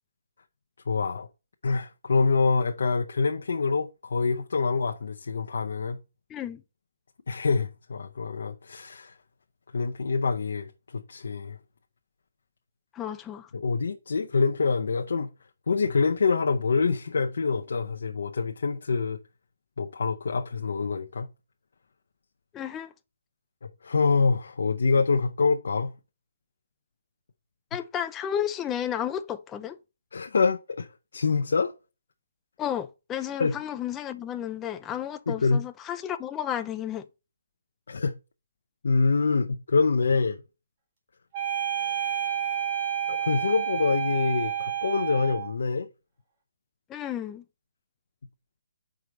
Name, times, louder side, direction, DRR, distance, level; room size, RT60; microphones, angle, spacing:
voice 1, 0.9-1.3 1.6-6.0 7.3-9.1 9.7-11.6 13.5-15.3 15.7-19.2 19.8-21.3 23.6-25.9 30.1-30.9 31.1-31.7 33.4-33.5 35.3-35.6 37.9-38.1 38.8-40.4 41.8-42.6 43.1-45.9, left 4 dB, 65° left, 0.6 m, -26 dB
voice 2, 6.3-6.6 12.9-13.5 22.5-22.9 27.7-29.8 32.6-37.1 46.9-47.4, left 10 dB, 10° left, 0.3 m, -32 dB
sound 1, 41.3-45.5, right 9 dB, 30° right, 1.8 m, -29 dB
4.9 x 4.6 x 5.1 m
hypercardioid pair, 170°, 0 cm